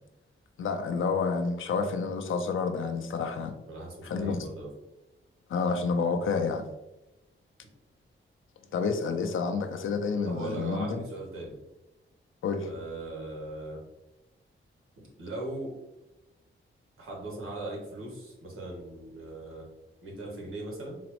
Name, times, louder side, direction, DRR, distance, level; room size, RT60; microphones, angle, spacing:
voice 1, 0.6-3.5 4.0-4.5 5.5-6.6 8.7-11.0 12.4-12.7, left 5 dB, 70° left, 6 dB, 0.4 m, -29 dB
voice 2, 3.7-4.7 10.2-11.6 12.6-13.8 15.0-15.7 17.0-19.6 20.0-21.0, right 2 dB, 80° right, -2 dB, 1.1 m, -39 dB
3.9 x 2.0 x 2.9 m, 0.95 s
wide cardioid pair, 150°, 21 cm